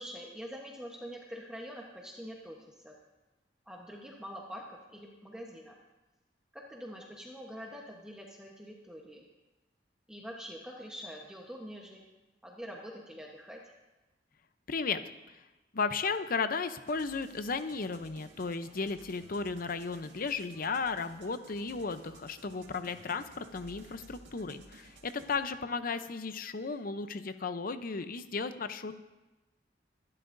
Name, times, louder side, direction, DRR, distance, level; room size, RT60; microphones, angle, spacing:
voice 1, 0.0-2.9 3.7-5.7 6.5-9.2 10.1-12.0 12.4-13.6, equal, 5° right, -2 dB, 1.1 m, -45 dB
voice 2, 14.7-15.0 15.7-29.0, left 4 dB, 50° left, 11 dB, 0.7 m, -35 dB
sound 1, 16.9-25.4, right 2 dB, 85° right, 1.8 m, -56 dB
25.0 x 12.0 x 2.6 m, 1.1 s
head